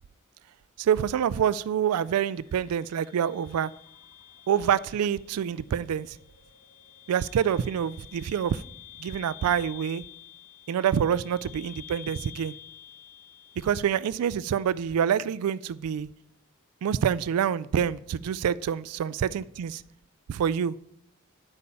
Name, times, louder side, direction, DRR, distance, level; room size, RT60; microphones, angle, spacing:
voice 1, 0.8-3.7 4.5-6.2 7.1-8.6 9.0-10.0 10.7-12.5 13.6-16.1 16.8-19.8 20.3-20.8, right 8 dB, 90° right, 0.3 m, -26 dB
sound 1, 1.9-14.9, left 12 dB, 90° left, 1.7 m, -50 dB
9.9 x 8.4 x 5.5 m
head